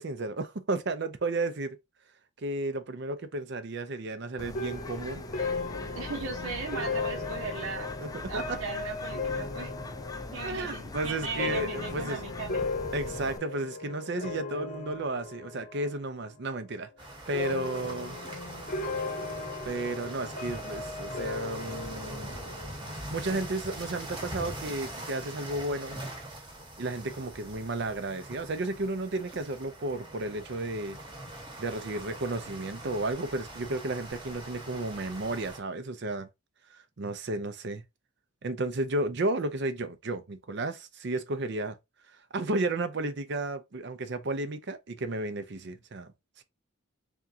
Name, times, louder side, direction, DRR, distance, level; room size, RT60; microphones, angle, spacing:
voice 1, 0.0-1.8 2.4-5.2 8.0-8.6 10.4-12.2 12.9-18.2 19.6-22.5 22.9-26.0 26.8-31.0 31.6-36.3 36.7-37.8 38.4-41.8 42.3-46.1 46.4-46.5, right 2 dB, 55° right, 0.6 m, -33 dB
Bird, 4.4-13.4, left 2 dB, 15° left, 0.4 m, -41 dB
sound 1, 4.5-16.0 16.3-16.9 17.3-22.7, left 3 dB, 45° left, 0.8 m, -37 dB
voice 2, 5.9-7.9 8.3-9.7 10.3-12.7, right 4 dB, 75° right, 1.0 m, -37 dB
sound 2, 17.0-35.6, right 1 dB, 20° right, 1.1 m, -42 dB
3.6 x 3.6 x 2.7 m
head